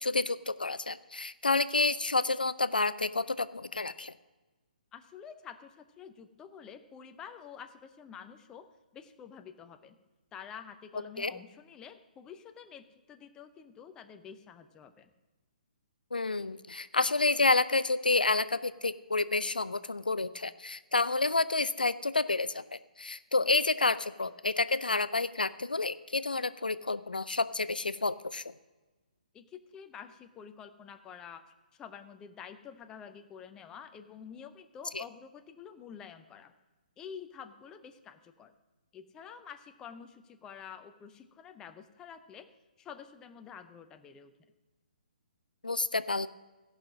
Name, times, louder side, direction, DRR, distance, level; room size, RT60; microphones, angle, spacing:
voice 1, 0.0-4.1 11.2-11.3 16.1-28.5 34.9-35.0 45.6-46.3, left 3 dB, 75° left, 15 dB, 0.5 m, -29 dB
voice 2, 4.9-8.7 8.9-10.0 10.3-15.1 29.3-31.4 31.7-36.5 37.0-38.5 38.9-42.5 42.8-44.3, left 7 dB, 15° left, 9 dB, 0.6 m, -48 dB
16.0 x 5.7 x 6.3 m, 1.2 s
figure-of-eight pair, 130°, 5 cm